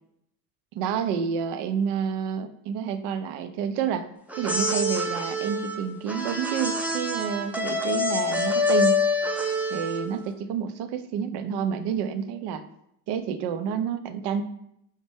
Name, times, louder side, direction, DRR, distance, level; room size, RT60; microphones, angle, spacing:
voice 1, 0.8-4.1 4.4-9.0 9.7-12.6 13.1-14.4, right 7 dB, 70° right, 9 dB, 0.5 m, -29 dB
sound 1, 4.3-10.2, left 2 dB, 5° right, 0.4 m, -26 dB
4.2 x 2.1 x 3.2 m, 0.76 s
supercardioid pair, 70°, 42 cm